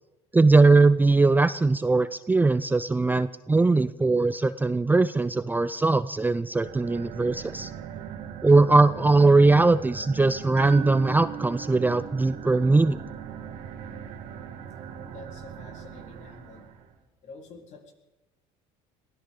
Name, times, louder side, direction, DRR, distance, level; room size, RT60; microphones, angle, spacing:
voice 1, 0.3-7.7 8.4-13.0, right 3 dB, 15° right, 14 dB, 0.5 m, -20 dB
sound 1, 6.5-16.9, right 8 dB, 75° right, 2.4 m, -41 dB
sound 2, 10.6-14.6, right 10 dB, 45° right, 1.1 m, -40 dB
voice 2, 15.0-16.7 17.2-17.9, left 3 dB, 55° left, 1 dB, 3.9 m, -47 dB
22.5 x 16.5 x 3.9 m, 1.0 s
supercardioid pair, 90°, 14 cm